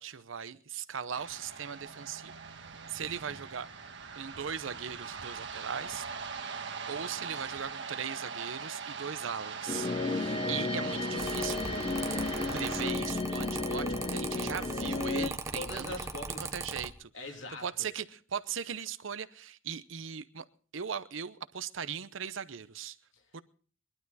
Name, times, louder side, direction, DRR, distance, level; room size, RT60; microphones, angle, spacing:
voice 1, 0.0-3.7 4.2-6.1 6.9-11.7 12.5-15.9 16.4-17.1 17.6-20.4 20.7-23.0 23.3-23.4, right 7 dB, 80° right, 0.7 m, -39 dB
sound 1, 1.1-12.9, right 5 dB, 65° right, 1.5 m, -41 dB
sound 2, 9.7-15.3, left 3 dB, 30° left, 0.7 m, -33 dB
voice 2, 10.1-10.7 15.5-16.5 17.1-17.7 23.1-23.2, left 2 dB, 70° left, 2.7 m, -43 dB
Mechanical fan, 11.2-16.9, right 3 dB, 15° right, 0.9 m, -39 dB
21.5 x 12.0 x 4.1 m
head